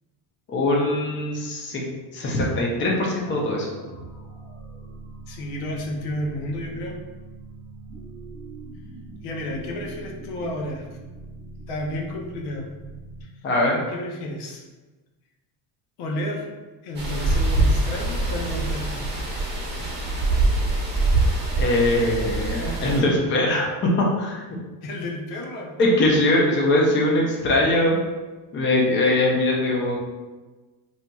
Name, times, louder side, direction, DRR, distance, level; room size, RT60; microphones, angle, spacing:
voice 1, 0.5-1.9 2.1-3.7 13.4-13.8 21.6-24.4 25.8-28.0 28.5-30.0, left 1 dB, 25° left, -2 dB, 0.6 m, -21 dB
sound 1, 3.2-13.2, right 3 dB, 10° left, 1.2 m, -42 dB
voice 2, 5.3-7.0 9.2-10.9 11.7-12.7 13.2-13.3 13.9-14.7 16.0-19.1 24.8-25.8, left 1 dB, 75° left, 1 dB, 0.8 m, -31 dB
sound 2, 16.9-23.0, right 2 dB, 20° right, 0.9 m, -24 dB
4.3 x 2.7 x 2.2 m, 1.2 s
cardioid pair, 140°, 47 cm